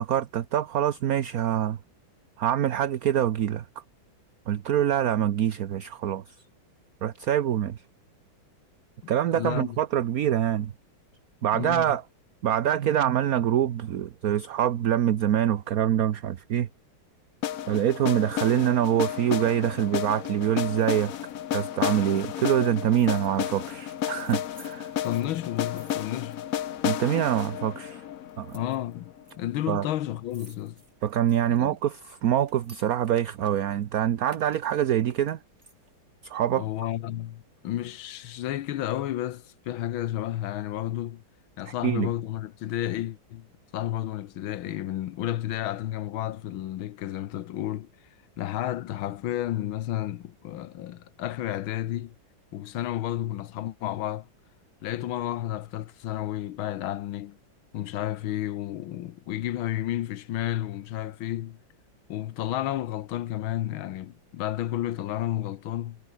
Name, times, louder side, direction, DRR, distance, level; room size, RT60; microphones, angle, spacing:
voice 1, 0.0-1.8 2.4-3.6 4.5-6.2 7.0-7.8 9.1-10.7 11.4-12.0 12.4-16.7 17.7-21.1 21.5-24.9 26.8-28.0 28.4-28.6 29.7-29.8 31.0-35.4 36.2-36.6 41.7-42.1, right 10 dB, 55° right, 1.2 m, -25 dB
voice 2, 9.0-9.8 11.5-12.0 25.0-26.4 28.5-29.1 29.4-30.8 31.5-31.7 36.5-41.2 41.6-43.5 43.7-47.9 48.4-52.1 52.5-54.3 54.8-57.4 57.7-61.6 62.1-66.0, left 13 dB, 80° left, 1.7 m, -31 dB
sound 1, 17.4-29.3, left 11 dB, 60° left, 1.0 m, -32 dB
sound 2, 20.8-26.9 27.2-27.8 28.3-29.3 29.6-29.7 29.9-33.9 34.2-36.0 36.4-36.5, right 1 dB, 35° right, 7.7 m, -56 dB
omnidirectional pair, 2.2 m